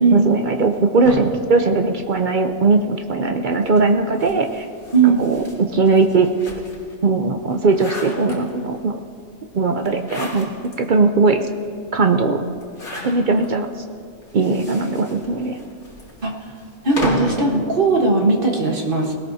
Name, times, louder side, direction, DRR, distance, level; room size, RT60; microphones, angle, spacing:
voice 1, 0.1-4.6 5.0-6.5 7.0-9.0 9.5-11.5 11.9-12.4 13.0-13.7 14.3-15.6, right 3 dB, 70° right, 5 dB, 0.4 m, -19 dB
sound 1, 1.0-2.6 3.5-6.9 7.4-8.8 9.8-10.8 11.3-11.4 11.6-11.7 12.6-13.5 14.2-17.4, left 1 dB, 45° left, 2.9 m, -32 dB
voice 2, 16.8-19.1, right 4 dB, 35° right, 1 dB, 1.4 m, -17 dB
20.0 x 18.0 x 2.7 m, 2.3 s
omnidirectional pair, 1.7 m